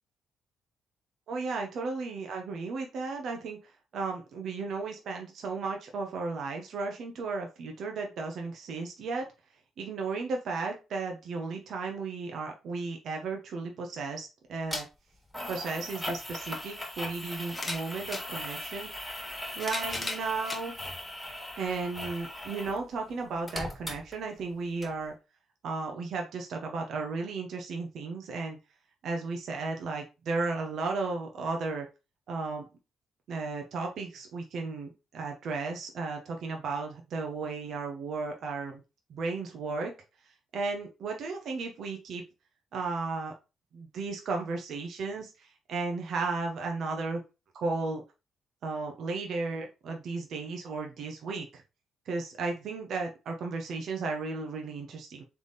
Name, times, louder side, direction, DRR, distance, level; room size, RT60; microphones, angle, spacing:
voice 1, 1.3-9.3 9.8-14.9 15.5-18.9 19.6-20.7 21.6-25.1 25.6-28.6 29.0-31.9 32.3-32.7 33.3-38.8 39.1-39.9 40.5-42.2 42.7-43.3 43.7-47.2 47.5-48.0 48.6-51.6 52.1-55.2, right 4 dB, 65° right, 2 dB, 0.9 m, -34 dB
sound 1, 14.7-14.8 15.3-22.8 23.1-24.5 24.8-24.9, left 1 dB, ahead, 1.7 m, -39 dB
sound 2, 17.5-18.3 19.3-20.6 21.4-21.5 22.8-22.9, left 2 dB, 20° left, 1.2 m, -36 dB
3.5 x 3.4 x 4.0 m, 0.29 s
cardioid pair, 90°, 0 cm